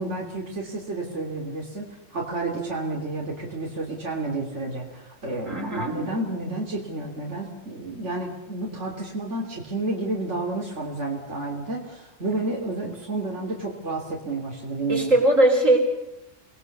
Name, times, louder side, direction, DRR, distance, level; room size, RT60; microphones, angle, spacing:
voice 1, 0.0-15.2, right 2 dB, 65° right, -1 dB, 3.6 m, -30 dB
voice 2, 5.4-6.0 14.9-15.8, right 1 dB, 90° right, 2 dB, 4.9 m, -20 dB
29.5 x 20.5 x 6.9 m, 0.90 s
omnidirectional pair, 1.3 m